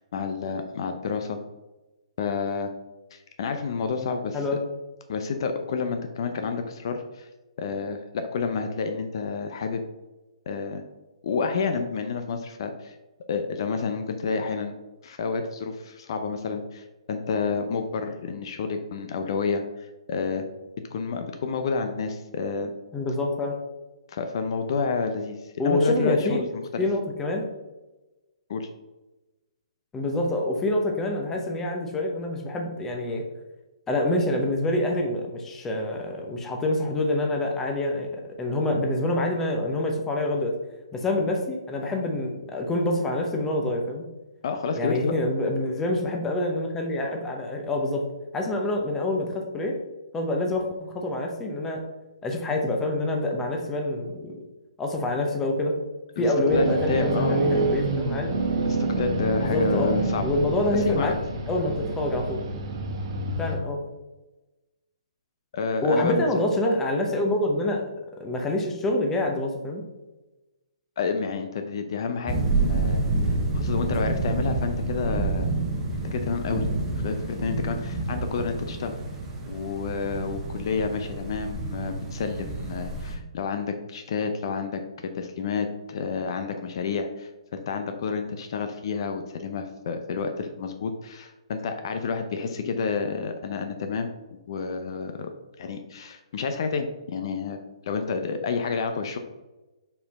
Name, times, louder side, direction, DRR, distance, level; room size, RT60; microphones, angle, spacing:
voice 1, 0.0-1.4 2.2-2.7 3.1-4.4 5.1-7.3 7.6-9.8 10.5-10.8 11.2-12.9 13.3-14.7 15.0-20.4 20.9-22.7 24.1-26.8 28.5-28.7 44.4-45.1 56.2-57.8 58.6-60.2 60.7-61.1 65.5-66.3 71.0-72.4 72.7-75.5 76.1-76.7 77.0-78.9 79.5-94.1 94.5-95.3 95.6-99.2, left 5 dB, 50° left, 6 dB, 0.6 m, -29 dB
voice 2, 4.0-4.6 22.9-23.6 25.6-26.4 26.8-27.5 29.9-33.2 33.9-38.1 38.4-40.5 40.9-44.1 44.7-48.1 48.3-49.8 50.1-51.8 52.2-54.4 54.8-55.7 56.2-58.3 59.4-59.9 60.2-61.2 61.5-62.4 63.4-63.8 65.8-67.8 68.2-69.8, left 1 dB, 10° left, 1 dB, 0.8 m, -26 dB
sound 1, 56.5-63.6, right 2 dB, 45° right, 1.2 m, -27 dB
sound 2, 72.3-83.1, right 2 dB, 15° right, 1.0 m, -28 dB
5.4 x 4.5 x 4.1 m, 1.1 s
hypercardioid pair, 155°, 3 cm